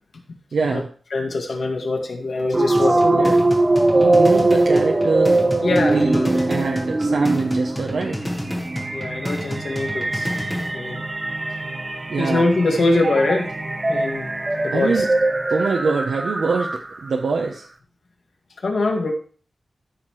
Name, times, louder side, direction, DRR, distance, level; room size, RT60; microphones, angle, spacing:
voice 1, 0.5-0.9 3.0-3.3 3.9-5.5 5.8-8.2 12.1-12.5 14.7-15.1 15.5-16.7 17.0-17.7, right 4 dB, 90° right, 1 dB, 0.9 m, -24 dB
voice 2, 1.1-3.3 5.6-6.4 8.9-10.3 10.7-11.0 12.2-13.5 13.9-14.3 14.6-15.1 18.6-19.1, left 2 dB, 70° left, 2 dB, 2.0 m, -23 dB
sound 1, 2.5-17.1, right 2 dB, 30° right, 0.7 m, -21 dB
sound 2, 2.8-10.8, equal, 10° left, 1.3 m, -31 dB
13.5 x 5.9 x 3.2 m, 0.41 s
wide cardioid pair, 120°, 0 cm